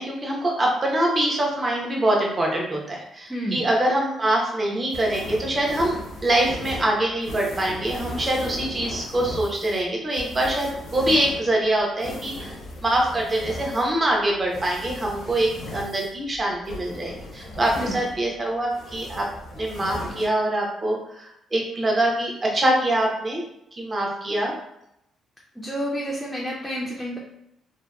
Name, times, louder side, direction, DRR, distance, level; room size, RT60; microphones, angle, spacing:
voice 1, 0.0-5.9 6.2-12.5 12.8-19.3 19.6-23.4 23.8-24.5, right 1 dB, 30° right, -1 dB, 0.7 m, -24 dB
voice 2, 3.3-3.7 17.8-18.0 25.6-27.2, equal, 5° left, -4 dB, 0.4 m, -29 dB
sound 1, 4.9-18.4 18.7-20.3, left 1 dB, 70° left, 0.6 m, -37 dB
2.7 x 2.0 x 2.3 m, 0.79 s
cardioid pair, 90°, 0 cm